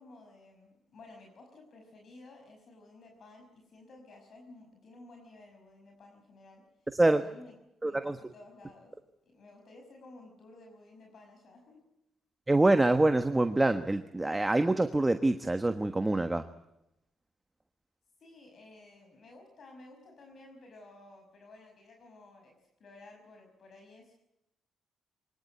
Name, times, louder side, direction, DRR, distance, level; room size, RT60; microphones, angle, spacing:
voice 1, 0.0-6.6 7.0-7.6 7.9-8.9 9.3-11.8 18.2-22.5 22.8-24.1, left 2 dB, 55° left, 3 dB, 5.6 m, -54 dB
voice 2, 6.9-7.2 7.8-8.2 12.5-16.5, right 2 dB, 15° right, 8 dB, 1.4 m, -25 dB
23.5 x 19.0 x 9.2 m, 0.87 s
cardioid pair, 90°, 0 cm